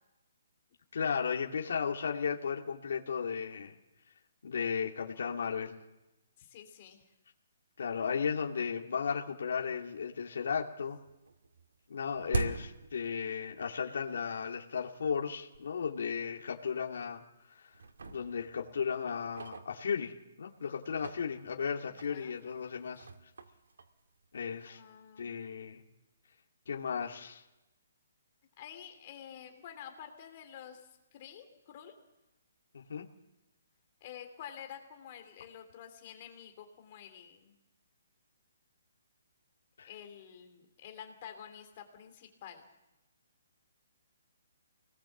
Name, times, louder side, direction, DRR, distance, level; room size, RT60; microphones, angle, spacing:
voice 1, 0.9-3.8 4.4-5.8 7.8-11.0 11.9-17.2 17.6-17.7 18.1-23.1 24.3-24.8 25.2-25.8 26.7-27.4 32.7-33.1 39.8-39.9, left 6 dB, 60° left, 1 dB, 2.3 m, -35 dB
voice 2, 6.4-7.1 21.8-22.4 24.6-25.4 28.6-31.9 34.0-37.5 39.8-42.7, left 9 dB, 30° left, 6 dB, 3.0 m, -49 dB
sound 1, 9.5-9.6 10.0-10.6 10.8-13.8 14.1-14.2 14.9-15.0 15.5-15.6 16.0-16.1 16.8-17.4 17.7-20.3 20.8-24.7, right 3 dB, 90° right, 2.2 m, -42 dB
26.0 x 19.5 x 7.3 m, 0.99 s
hypercardioid pair, 175°, 0 cm